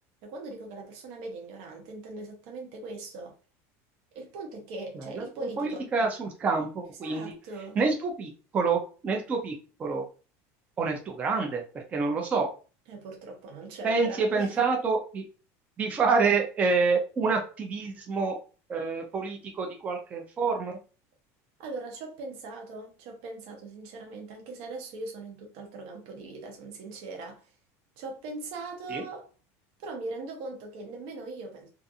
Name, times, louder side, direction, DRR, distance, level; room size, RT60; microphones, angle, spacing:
voice 1, 0.2-3.3 4.1-6.1 7.0-7.8 12.9-14.6 21.6-27.5 28.0-29.3 29.8-31.7, right 3 dB, 60° right, 0.7 m, -40 dB
voice 2, 5.2-7.3 7.8-9.5 9.8-10.0 10.8-12.5 13.8-15.2 15.8-18.4 18.7-20.8 28.9-29.0, right 4 dB, 20° right, 0.4 m, -27 dB
2.4 x 2.4 x 2.6 m
cardioid pair, 165°, 8 cm